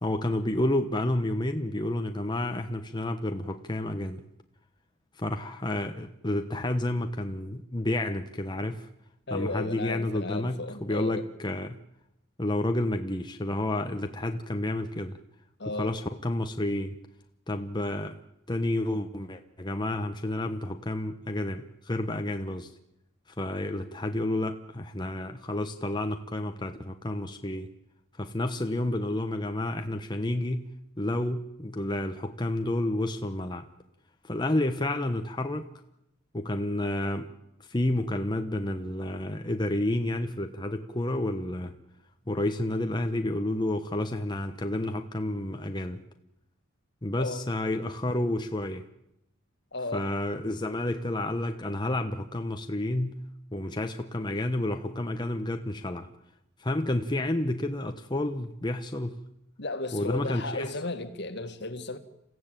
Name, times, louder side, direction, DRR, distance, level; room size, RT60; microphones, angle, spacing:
voice 1, 0.0-4.2 5.1-8.9 9.3-11.8 12.4-15.2 15.8-17.0 17.5-18.2 18.5-22.7 23.4-27.7 28.2-30.7 31.0-33.7 34.2-35.7 36.3-37.3 37.6-41.8 42.3-46.0 47.0-48.9 49.9-53.2 53.5-56.1 56.6-59.2 59.9-60.7, left 1 dB, 20° left, 1.1 m, -30 dB
voice 2, 9.3-11.3 15.6-16.0 47.2-47.5 49.7-50.1 59.6-62.0, left 2 dB, 55° left, 2.0 m, -34 dB
28.5 x 16.0 x 9.2 m
head